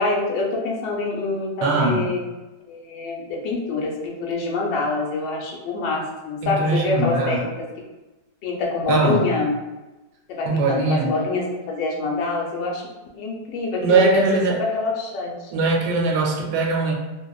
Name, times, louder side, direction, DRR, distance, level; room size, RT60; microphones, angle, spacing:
voice 1, 0.0-2.2 2.7-7.7 8.4-9.5 10.3-12.8 13.1-15.5, left 3 dB, 80° left, -1 dB, 1.2 m, -25 dB
voice 2, 1.6-2.1 6.4-7.4 8.9-9.3 10.4-11.1 13.8-14.6 15.5-16.9, right 3 dB, 85° right, 0 dB, 1.3 m, -21 dB
3.0 x 2.0 x 2.3 m, 1.1 s
omnidirectional pair, 2.0 m